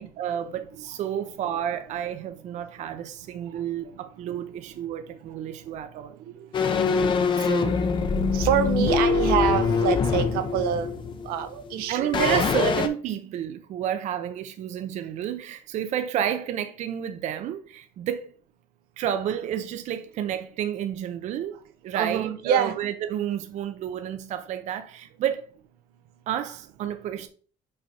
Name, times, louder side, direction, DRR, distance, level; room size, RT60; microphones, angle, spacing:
voice 1, 0.0-6.2 7.4-7.8 8.8-9.2 11.8-18.3 19.0-21.6 21.8-25.5 26.3-27.3, right 10 dB, 50° right, 0.7 m, -30 dB
sound 1, 6.5-11.7 12.1-12.9, left 5 dB, 30° left, 0.7 m, -24 dB
voice 2, 8.3-10.9 11.3-12.4 21.9-22.8, right 9 dB, 85° right, 0.9 m, -25 dB
5.5 x 5.1 x 4.3 m
cardioid pair, 150°, 16 cm